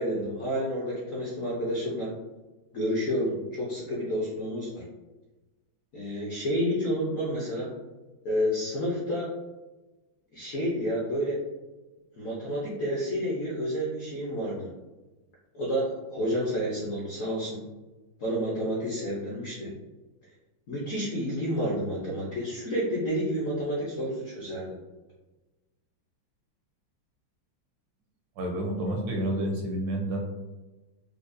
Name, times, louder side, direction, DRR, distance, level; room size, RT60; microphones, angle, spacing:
voice 1, 0.0-2.1 2.7-4.8 5.9-7.7 8.2-9.3 10.3-11.4 12.2-14.7 15.5-17.6 18.2-19.7 20.7-24.7, equal, 70° left, -5 dB, 0.7 m, -30 dB
voice 2, 28.4-30.2, right 1 dB, 75° right, 1 dB, 1.2 m, -29 dB
4.9 x 2.1 x 2.5 m, 1.1 s
omnidirectional pair, 2.3 m